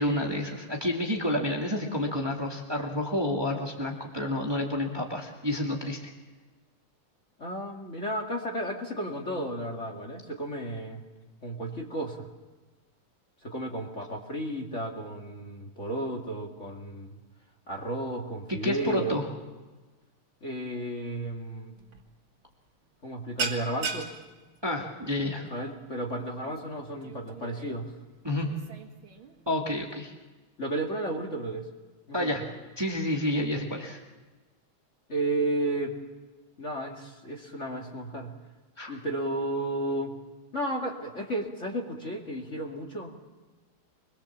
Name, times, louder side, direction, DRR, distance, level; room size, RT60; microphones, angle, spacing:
voice 1, 0.0-6.0 18.5-19.3 24.6-25.5 28.2-28.5 29.5-30.1 32.1-32.4 32.8-34.0 38.8-38.9, left 1 dB, 10° right, 0 dB, 2.1 m, -29 dB
voice 2, 7.4-11.0 11.4-12.3 13.4-17.2 17.7-19.2 20.4-21.7 23.0-24.1 25.5-27.9 30.6-31.7 32.1-32.5 35.1-36.0 36.6-38.4 38.9-40.2 40.5-43.1, right 1 dB, 35° left, 2 dB, 2.4 m, -33 dB
sound 1, 21.8-22.0 22.3-22.6 22.9-29.8, right 5 dB, 70° right, 2.7 m, -39 dB
25.0 x 21.5 x 7.3 m, 1.2 s
omnidirectional pair, 2.3 m